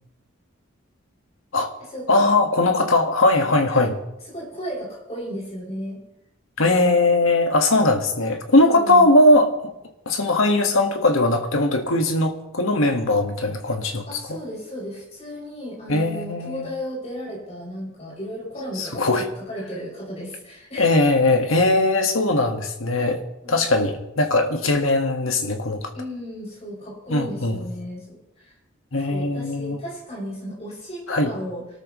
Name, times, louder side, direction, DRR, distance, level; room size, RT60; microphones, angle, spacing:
voice 1, 2.1-4.0 6.6-9.5 10.0-14.4 15.9-16.7 18.8-19.2 20.8-23.2 23.5-25.9 27.1-27.6 28.9-29.8 31.1-31.3, left 2 dB, 75° left, 1.8 m, -20 dB
voice 2, 4.3-6.0 8.6-9.1 14.1-20.9 23.4-23.6 25.9-28.5 29.1-31.6, equal, 30° left, 6.9 m, -34 dB
26.0 x 13.0 x 3.2 m
head